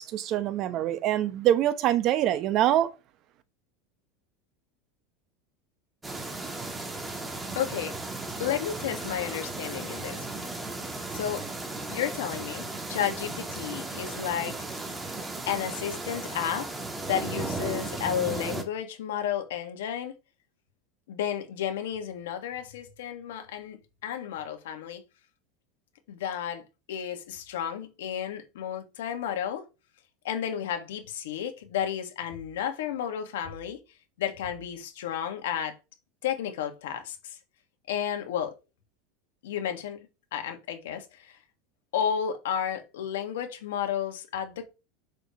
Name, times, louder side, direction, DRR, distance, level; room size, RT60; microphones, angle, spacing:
voice 1, 0.0-2.9, right 12 dB, 45° right, 1.1 m, -24 dB
sound 1, 6.0-18.6, right 2 dB, 10° right, 1.8 m, -35 dB
voice 2, 7.6-8.0 8.4-10.3 11.1-11.5 11.9-14.6 15.5-16.7 17.0-20.1 21.1-25.0 26.1-29.7 30.2-33.8 34.2-35.8 36.2-37.4 37.9-38.5 39.4-40.1 40.3-41.4 41.9-44.7, left 9 dB, 85° left, 2.0 m, -32 dB
7.7 x 6.5 x 3.2 m
supercardioid pair, 130°, 0 cm